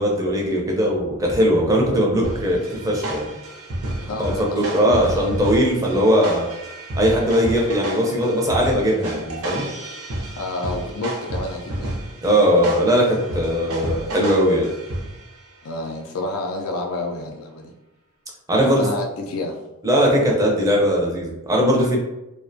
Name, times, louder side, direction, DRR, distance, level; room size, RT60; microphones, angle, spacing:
voice 1, 0.0-3.3 4.2-6.5 6.9-9.7 12.2-14.7 18.5-18.9 19.8-22.0, equal, 15° right, -2 dB, 0.4 m, -19 dB
sound 1, 2.2-15.4, right 1 dB, 80° right, 0.6 m, -31 dB
voice 2, 4.0-5.3 10.4-12.0 15.6-17.7 18.6-19.6, left 2 dB, 75° left, 1 dB, 0.4 m, -29 dB
2.4 x 2.1 x 2.6 m, 0.98 s
head